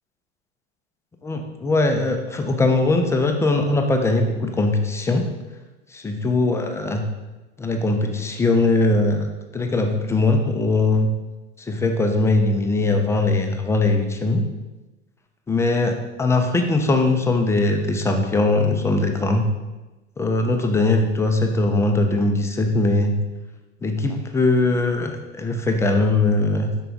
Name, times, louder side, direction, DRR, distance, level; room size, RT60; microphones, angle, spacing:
voice 1, 1.2-5.2 5.9-7.0 7.6-9.3 9.5-11.1 11.6-14.4 15.5-19.5 20.2-23.1 23.8-26.7, left 2 dB, 10° left, 4 dB, 0.4 m, -20 dB
5.5 x 4.5 x 3.9 m, 1.1 s
figure-of-eight pair, 85°, 35 cm